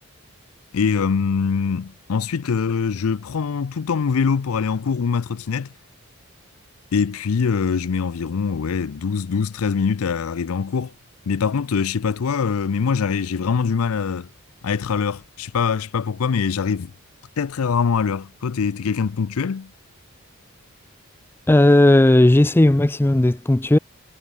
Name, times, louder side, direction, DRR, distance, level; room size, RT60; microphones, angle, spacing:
voice 1, 0.7-5.7 6.9-10.9 11.3-14.3 14.6-16.9 17.4-19.7, left 5 dB, 80° left, 0.5 m, -23 dB
voice 2, 21.5-23.8, left 1 dB, 10° left, 0.4 m, -15 dB
head